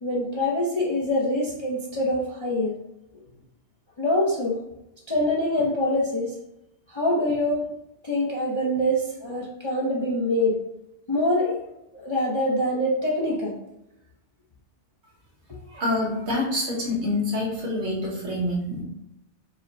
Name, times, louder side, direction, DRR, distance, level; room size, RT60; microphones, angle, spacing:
voice 1, 0.0-2.8 4.0-4.6 5.1-6.4 6.9-7.6 8.0-10.6 11.1-11.7 11.9-13.6 15.5-15.6, left 1 dB, 35° left, -4 dB, 0.5 m, -24 dB
voice 2, 15.7-18.8, left 1 dB, 65° right, -3 dB, 1.5 m, -26 dB
4.8 x 2.1 x 4.0 m, 0.89 s
omnidirectional pair, 1.2 m